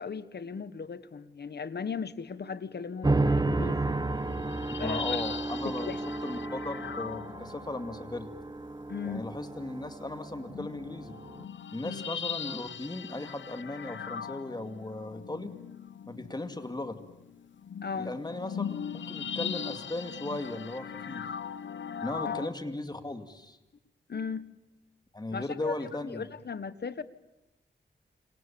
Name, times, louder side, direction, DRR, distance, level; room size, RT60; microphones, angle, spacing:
voice 1, 0.0-3.9 4.8-5.0 5.6-6.0 8.9-9.2 11.8-12.0 17.8-18.1 22.2-22.3 24.1-24.5 25.3-27.0, left 5 dB, 60° left, 1.4 m, -37 dB
sound 1, 3.0-11.4, right 2 dB, 20° right, 1.1 m, -32 dB
sound 2, 3.6-8.1 9.1-9.2 10.4-22.5, left 7 dB, 75° left, 1.0 m, -40 dB
voice 2, 4.7-5.9 6.2-8.3 9.0-11.2 11.7-15.5 16.1-17.0 17.9-18.7 18.9-21.3 22.0-23.6 25.1-26.3, left 2 dB, 20° left, 2.4 m, -37 dB
29.5 x 27.0 x 7.1 m
wide cardioid pair, 110°, 19 cm